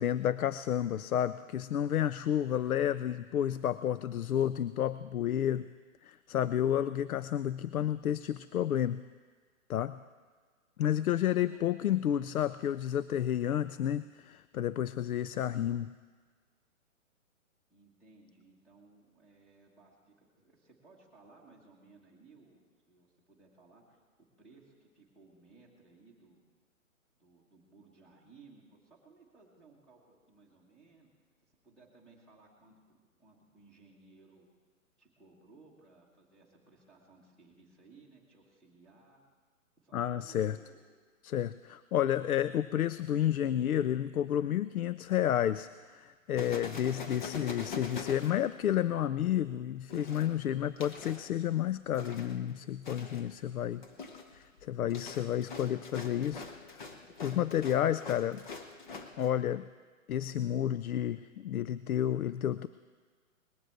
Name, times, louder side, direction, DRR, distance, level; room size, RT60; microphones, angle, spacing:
voice 1, 0.0-5.7 6.0-9.0 9.7-10.0 10.8-15.9 39.9-40.6 41.2-53.8 54.3-56.5 56.7-56.8 57.2-58.4 59.2-59.7 60.1-62.7, left 10 dB, 85° left, 15 dB, 0.6 m, -31 dB
voice 2, 11.3-11.7 17.7-24.0 24.4-26.4 27.2-31.1 31.6-34.5 35.0-39.2 39.8-41.0, right 3 dB, ahead, -3 dB, 1.4 m, -60 dB
sound 1, 46.4-49.0 49.9-51.3 51.9-52.5 52.9-53.3 53.7-59.3, left 4 dB, 35° left, 1.1 m, -44 dB
20.0 x 7.8 x 7.8 m, 1.5 s
hypercardioid pair, 165°, 42 cm